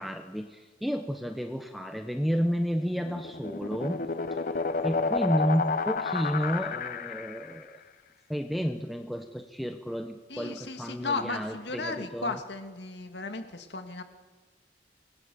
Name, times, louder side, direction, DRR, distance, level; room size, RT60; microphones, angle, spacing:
voice 1, 0.0-4.0 4.8-7.8 8.3-12.4, equal, ahead, 6 dB, 1.0 m, -31 dB
sound 1, 2.8-7.6, left 4 dB, 50° left, 1.0 m, -31 dB
voice 2, 10.3-14.0, left 3 dB, 70° left, 6 dB, 2.1 m, -35 dB
25.5 x 20.5 x 7.0 m, 1.4 s
head